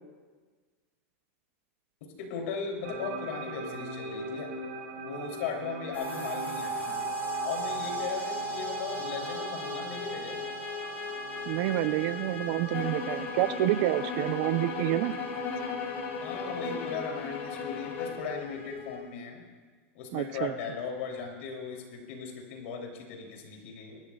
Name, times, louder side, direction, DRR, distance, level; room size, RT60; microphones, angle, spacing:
voice 1, 2.2-4.6 5.0-7.0 7.4-10.4 16.2-19.4 19.9-24.0, left 5 dB, 65° left, 1 dB, 3.2 m, -37 dB
sound 1, 2.8-16.8, right 2 dB, 75° right, 3.6 m, -43 dB
sound 2, 5.9-19.0, equal, 25° left, 4.3 m, -38 dB
voice 2, 11.5-15.2 20.1-20.5, right 15 dB, 55° right, 13 dB, 0.6 m, -28 dB
sound 3, 12.7-18.2, left 5 dB, 50° left, 3.3 m, -36 dB
24.0 x 12.5 x 2.4 m, 1.4 s
supercardioid pair, 140°, 7 cm